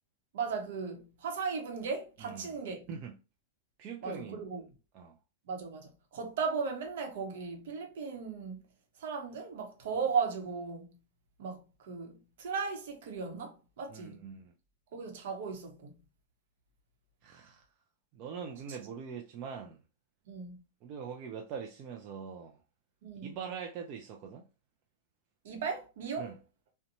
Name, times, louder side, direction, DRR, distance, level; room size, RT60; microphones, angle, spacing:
voice 1, 0.3-2.9 4.0-4.6 5.5-8.6 9.0-10.9 11.4-14.2 14.9-15.9 20.3-20.6 23.0-23.3 25.4-26.4, right 5 dB, 70° right, 0.8 m, -36 dB
voice 2, 2.2-2.6 2.9-3.2 3.8-4.4 4.9-5.2 13.9-14.5 17.2-17.7 18.1-19.8 20.8-22.6 23.2-24.4 26.2-26.4, right 6 dB, 40° right, 0.4 m, -43 dB
2.7 x 2.1 x 2.6 m
hypercardioid pair, 130°, 0 cm